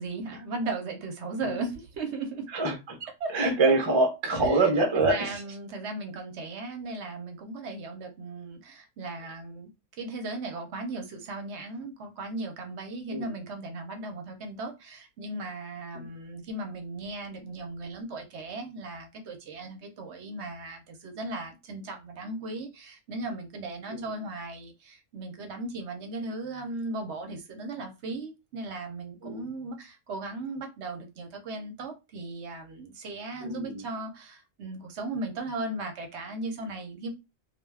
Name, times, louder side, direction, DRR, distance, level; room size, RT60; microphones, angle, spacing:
voice 1, 0.0-2.5 3.0-3.7 4.4-4.6 5.0-9.7 10.0-37.1, right 2 dB, 65° right, 0.9 m, -37 dB
voice 2, 2.5-3.0 3.3-5.4 13.1-13.3 15.9-16.1 23.9-24.0 29.2-29.4 33.4-33.8, right 2 dB, 35° right, 0.5 m, -25 dB
2.3 x 2.2 x 3.2 m
omnidirectional pair, 1.3 m